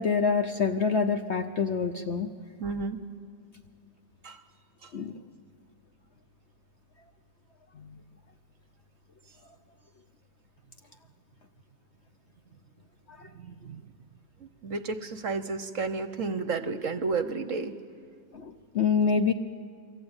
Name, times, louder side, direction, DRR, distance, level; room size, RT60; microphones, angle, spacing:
voice 1, 0.0-2.3 4.9-5.1 18.3-19.3, left 5 dB, 50° left, 6 dB, 0.9 m, -26 dB
voice 2, 2.6-3.0 4.2-4.4 4.8-4.9 13.3-13.8 14.4-17.7, right 4 dB, 55° right, 11 dB, 1.1 m, -32 dB
27.5 x 23.5 x 8.9 m, 2.1 s
omnidirectional pair, 2.0 m